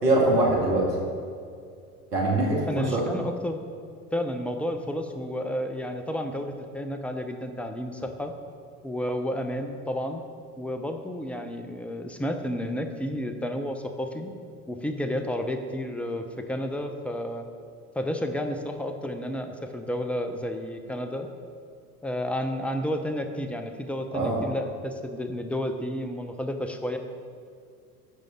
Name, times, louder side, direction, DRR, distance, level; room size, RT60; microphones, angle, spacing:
voice 1, 0.0-0.9 2.1-3.0 24.1-24.4, right 2 dB, 85° right, -3 dB, 2.2 m, -23 dB
voice 2, 2.7-3.6 4.1-8.3 8.8-10.2 10.6-14.3 14.7-17.5 18.0-21.3 22.0-27.0, equal, 5° left, 6 dB, 0.7 m, -31 dB
14.5 x 5.2 x 3.7 m, 2.3 s
figure-of-eight pair, 75°, 46 cm